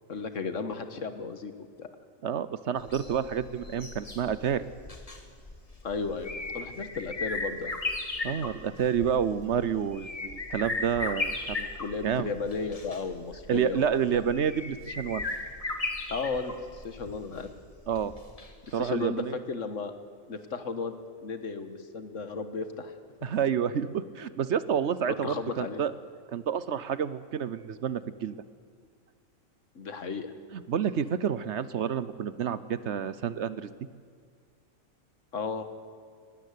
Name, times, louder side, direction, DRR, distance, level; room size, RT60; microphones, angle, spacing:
voice 1, 0.1-1.5 1.8-1.9 5.8-7.8 11.8-14.2 16.1-17.5 18.7-19.9 20.3-22.9 25.1-25.8 29.7-30.3 35.3-35.6, left 4 dB, 70° left, 9 dB, 1.7 m, -34 dB
voice 2, 2.2-4.7 8.2-12.3 13.5-15.2 17.9-18.1 18.7-19.4 23.2-25.9 26.3-28.4 30.5-33.7, right 8 dB, 60° right, 15 dB, 1.0 m, -29 dB
sound 1, 2.8-18.7 19.0-19.1, left 2 dB, 30° left, 1.6 m, -37 dB
20.0 x 17.0 x 8.4 m, 2.1 s
omnidirectional pair, 1.4 m